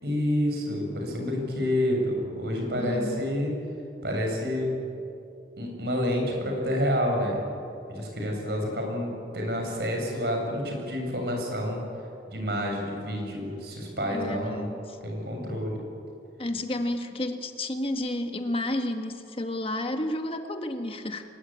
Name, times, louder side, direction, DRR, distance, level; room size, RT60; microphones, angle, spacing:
voice 1, 0.0-3.5 4.0-4.8 5.6-7.4 7.9-11.8 12.3-14.7 15.0-15.8, equal, 65° right, 1 dB, 6.8 m, -28 dB
voice 2, 2.8-3.2 14.0-15.0 16.4-21.3, left 1 dB, 35° left, 6 dB, 1.4 m, -31 dB
24.0 x 21.5 x 8.8 m, 2.6 s
head